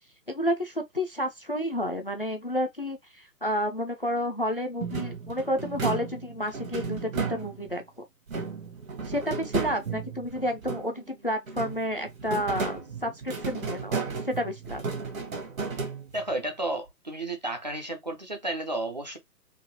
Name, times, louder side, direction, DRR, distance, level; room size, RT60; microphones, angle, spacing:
voice 1, 0.3-7.8 9.0-14.8, equal, 40° left, 0.4 m, -30 dB
sound 1, 4.8-7.8 8.3-11.1 11.5-16.4, right 4 dB, 55° right, 1.3 m, -34 dB
voice 2, 16.1-19.2, right 1 dB, 30° right, 0.5 m, -32 dB
3.9 x 2.5 x 2.7 m
figure-of-eight pair, 140°, 48 cm